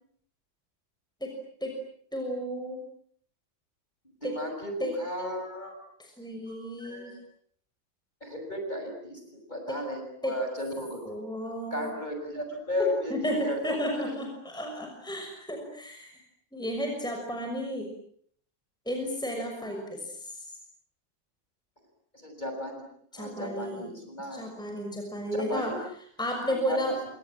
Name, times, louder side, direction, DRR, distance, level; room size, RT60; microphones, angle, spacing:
voice 1, 2.1-2.8 4.2-4.3 4.8-4.9 6.0-7.2 9.7-9.8 10.2-10.4 11.0-11.9 13.1-16.2 16.5-17.9 18.9-20.5 23.1-23.9 24.3-25.7 26.2-27.0, equal, ahead, 2 dB, 6.2 m, -33 dB
voice 2, 4.2-5.7 6.5-7.2 8.2-11.0 11.7-14.0 22.1-22.8 23.2-24.4 25.3-25.8 26.6-26.8, left 1 dB, 20° left, 3 dB, 6.6 m, -34 dB
29.5 x 26.5 x 7.5 m, 0.62 s
omnidirectional pair, 2.1 m